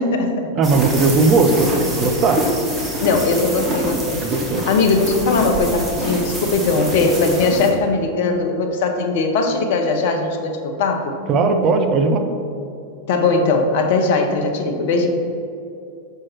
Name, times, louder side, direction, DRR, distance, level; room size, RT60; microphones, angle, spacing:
voice 1, 0.0-0.5 1.3-1.4 3.0-4.2 4.7-11.2 13.1-15.1, left 3 dB, 50° left, 5 dB, 0.8 m, -19 dB
sound 1, 0.6-7.7, right 1 dB, 15° right, 1.5 m, -26 dB
voice 2, 0.6-2.4 4.2-4.6 11.3-12.2, right 3 dB, 35° right, 5 dB, 0.7 m, -17 dB
6.3 x 5.7 x 4.4 m, 2.6 s
figure-of-eight pair, 90°, 0 cm